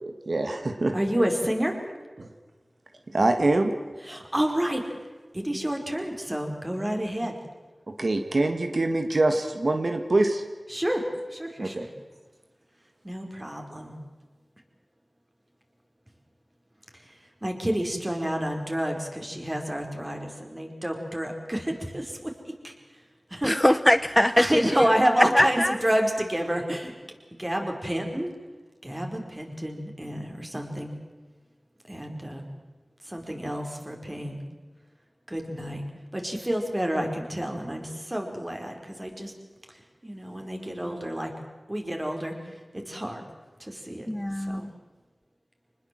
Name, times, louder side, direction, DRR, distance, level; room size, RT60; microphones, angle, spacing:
voice 1, 0.0-0.9 2.2-2.3 3.1-3.7 7.9-10.4 11.6-11.9, right 2 dB, 65° right, 1.7 m, -24 dB
voice 2, 0.9-1.7 4.1-4.8 5.3-7.3 10.7-11.0 11.3-11.9 13.0-14.0 17.4-22.3 22.6-22.7 23.3-23.5 24.4-26.9 27.4-28.3 28.8-30.9 31.9-32.4 33.1-34.4 35.3-35.8 36.1-39.3 40.0-41.3 41.7-42.3 42.7-43.2 43.6-44.1 44.5-44.6, right 1 dB, 25° right, 4.7 m, -29 dB
voice 3, 23.4-25.8 44.1-44.7, left 1 dB, 15° left, 0.8 m, -22 dB
25.5 x 20.0 x 7.7 m
wide cardioid pair, 40°, 0 cm